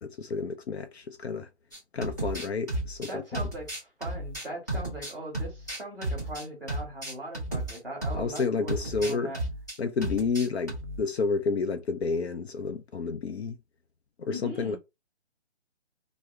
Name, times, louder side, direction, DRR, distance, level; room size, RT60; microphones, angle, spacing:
voice 1, 0.0-1.5 1.9-3.2 8.1-9.4 9.8-13.6 14.2-14.8, left 4 dB, 65° left, 0.5 m, -30 dB
sound 1, 1.7-8.4 8.7-9.8 10.0-11.0, right 1 dB, 15° left, 0.6 m, -34 dB
voice 2, 3.0-9.4 14.3-14.8, equal, ahead, 0.9 m, -40 dB
3.2 x 2.1 x 3.3 m
hypercardioid pair, 170°, 35 cm